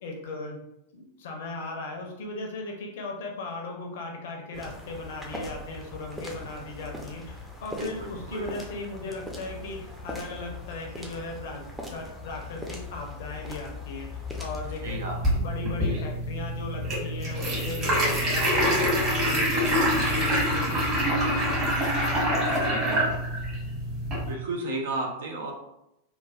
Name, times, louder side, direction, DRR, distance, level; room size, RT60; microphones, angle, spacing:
voice 1, 0.0-0.6 0.9-14.1 14.4-15.0 15.3-21.7 22.0-23.0, left 2 dB, 55° left, 1 dB, 0.6 m, -37 dB
sound 1, 4.5-15.0, left 2 dB, 5° right, 0.5 m, -40 dB
voice 2, 7.7-8.5 14.8-15.2 20.3-21.3 22.5-23.1 24.3-25.5, right 2 dB, 60° right, 2 dB, 0.5 m, -35 dB
sound 2, 14.8-24.3, equal, 30° right, 1.3 m, -26 dB
3.1 x 2.3 x 2.4 m, 0.85 s
figure-of-eight pair, 90°, 0 cm